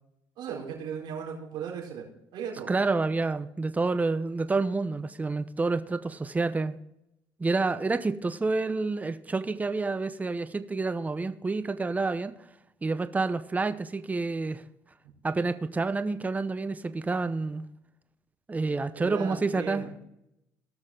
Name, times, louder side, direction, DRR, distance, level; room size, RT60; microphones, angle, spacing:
voice 1, 0.4-2.7 18.9-19.9, right 7 dB, 70° right, -1 dB, 4.3 m, -37 dB
voice 2, 2.7-6.8 7.4-12.3 12.8-14.6 15.2-17.6 18.5-19.8, right 3 dB, 20° right, 11 dB, 0.8 m, -28 dB
17.5 x 6.4 x 3.8 m, 0.82 s
supercardioid pair, 85°, 8 cm